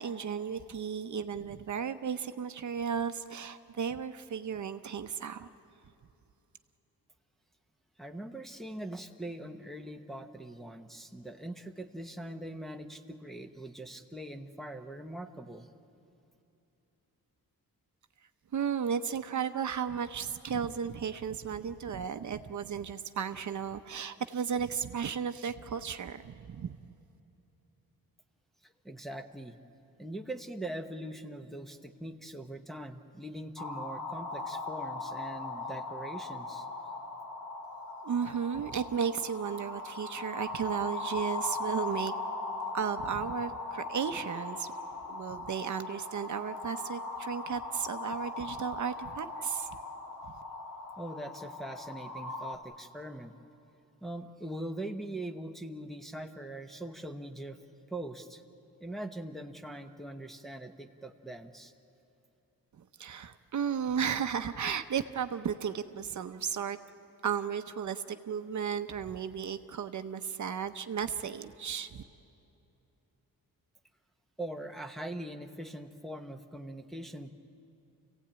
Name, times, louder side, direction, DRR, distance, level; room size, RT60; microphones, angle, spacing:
voice 1, 0.0-5.5 18.5-26.8 38.0-42.1 42.7-44.7 45.1-49.7 62.8-66.8 67.2-72.0, right 7 dB, 55° right, 9 dB, 0.7 m, -34 dB
voice 2, 8.0-15.7 28.6-29.6 30.0-36.6 51.0-53.3 54.0-57.6 57.9-58.4 58.8-61.7 74.4-77.3, right 1 dB, ahead, 3 dB, 0.9 m, -42 dB
sound 1, 33.6-52.6, left 3 dB, 65° left, 2.5 m, -39 dB
29.0 x 16.0 x 8.9 m, 2.8 s
wide cardioid pair, 175°, 35 cm